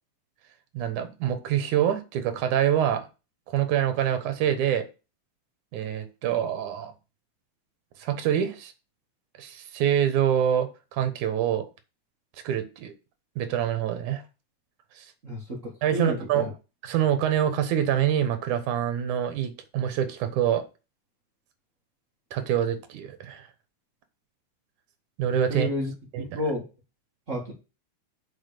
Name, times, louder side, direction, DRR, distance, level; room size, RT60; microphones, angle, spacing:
voice 1, 0.7-3.0 3.5-4.9 5.7-6.9 8.0-8.7 9.4-11.7 12.4-12.9 13.4-14.2 15.0-15.1 15.8-16.5 16.8-20.6 22.3-23.5 25.2-25.7 26.1-26.3, right 10 dB, 80° right, 2.6 m, -25 dB
voice 2, 15.2-16.5 25.5-25.9 26.2-26.7 27.3-27.5, left 1 dB, 30° right, 1.8 m, -31 dB
7.3 x 4.5 x 6.6 m
omnidirectional pair, 3.5 m